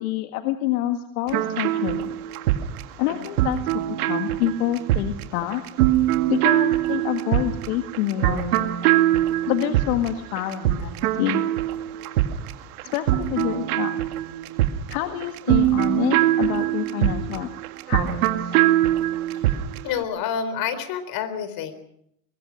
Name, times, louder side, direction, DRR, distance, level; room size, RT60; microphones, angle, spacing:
voice 1, 0.0-2.1 3.0-5.6 6.3-8.7 9.5-11.4 12.9-13.9 14.9-17.5 17.9-18.5, left 13 dB, 80° left, 6 dB, 2.0 m, -27 dB
sound 1, 1.3-19.9, right 14 dB, 85° right, 2.1 m, -23 dB
voice 2, 19.8-21.7, left 8 dB, 55° left, 12 dB, 3.9 m, -28 dB
22.5 x 22.5 x 6.4 m, 0.74 s
supercardioid pair, 120°, 43 cm